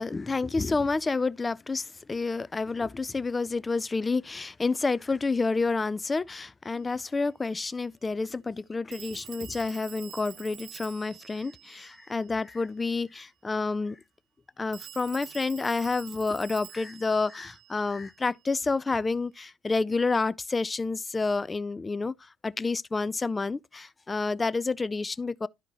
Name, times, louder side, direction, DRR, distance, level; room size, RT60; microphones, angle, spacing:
voice 1, 0.0-14.0 14.6-25.5, left 3 dB, 20° left, 0.3 m, -29 dB
Telephone, 6.7-6.8 8.9-12.6 14.7-18.4, right 11 dB, 60° right, 0.5 m, -47 dB
12.5 x 4.8 x 2.9 m
supercardioid pair, 90°, 0 cm